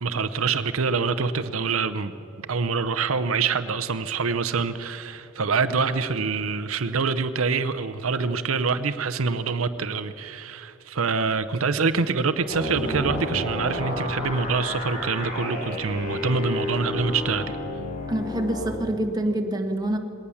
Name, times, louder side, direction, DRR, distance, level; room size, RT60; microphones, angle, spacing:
voice 1, 0.0-2.1 2.5-17.6, right 5 dB, 85° right, 11 dB, 0.7 m, -25 dB
sound 1, 12.5-18.8, left 1 dB, 40° left, 3.9 m, -31 dB
voice 2, 18.1-20.0, right 1 dB, 20° right, 3 dB, 1.5 m, -26 dB
20.0 x 18.5 x 7.1 m, 2.8 s
head